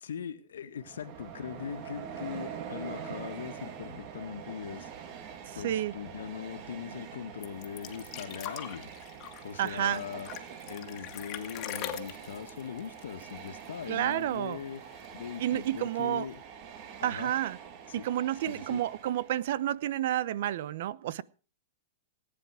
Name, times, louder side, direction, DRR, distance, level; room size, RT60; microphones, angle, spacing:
voice 1, 0.0-4.9 5.5-8.9 9.4-14.8 15.1-16.4 17.0-17.3 17.9-18.1 18.4-18.8, left 8 dB, 90° left, 1.8 m, -40 dB
Train, 0.8-19.7, right 7 dB, 40° right, 2.4 m, -45 dB
voice 2, 5.5-5.9 9.6-10.0 13.9-14.6 15.4-16.3 17.0-17.6 17.9-21.2, right 12 dB, 60° right, 0.8 m, -30 dB
sound 1, 7.4-13.8 14.1-14.2 14.5-15.2 16.1-16.2, left 11 dB, 35° left, 1.9 m, -42 dB
18.5 x 9.8 x 4.9 m
hypercardioid pair, 150°, 0 cm